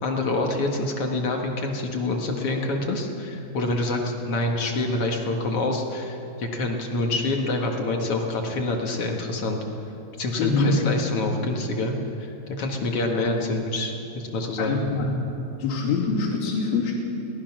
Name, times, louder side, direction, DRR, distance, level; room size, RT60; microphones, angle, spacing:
voice 1, 0.0-9.6 10.2-14.8, left 2 dB, 50° left, 1 dB, 2.1 m, -26 dB
voice 2, 10.4-10.7 14.6-15.1 15.6-16.9, left 4 dB, 80° left, -4 dB, 4.6 m, -24 dB
23.5 x 18.0 x 6.0 m, 2.9 s
omnidirectional pair, 4.3 m